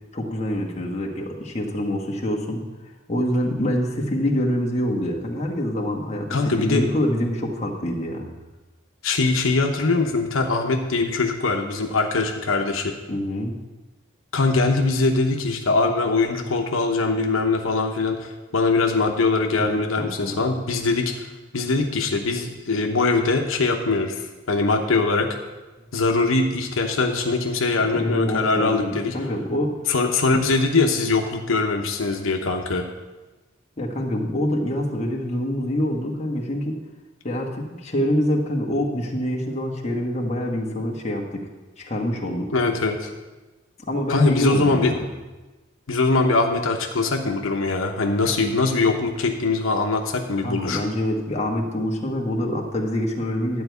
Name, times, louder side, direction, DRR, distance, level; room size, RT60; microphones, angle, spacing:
voice 1, 0.1-2.7 3.1-8.3 13.1-13.6 19.6-20.4 27.9-29.8 33.8-36.8 37.2-41.5 41.8-42.5 43.8-45.1 50.4-53.6, equal, 30° left, 0 dB, 1.3 m, -25 dB
voice 2, 6.3-6.9 9.0-12.9 14.3-21.2 21.5-24.2 24.5-25.3 25.9-29.2 29.9-32.9 42.5-43.1 44.1-44.9 45.9-50.8, left 3 dB, 75° left, 3 dB, 1.0 m, -22 dB
11.5 x 4.7 x 8.1 m, 1.2 s
head